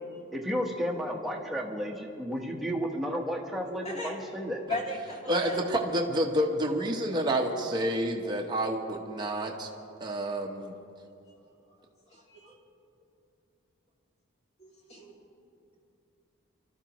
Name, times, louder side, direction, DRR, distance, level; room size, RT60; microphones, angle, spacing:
voice 1, 0.3-4.6, equal, ahead, -1 dB, 1.2 m, -32 dB
voice 2, 3.8-4.1 4.7-5.6 12.1-12.5 14.6-15.1, left 2 dB, 30° left, -3 dB, 2.4 m, -37 dB
voice 3, 5.3-9.7 10.0-10.7, right 1 dB, 20° right, -1 dB, 1.0 m, -29 dB
25.5 x 13.0 x 3.1 m, 2.6 s
head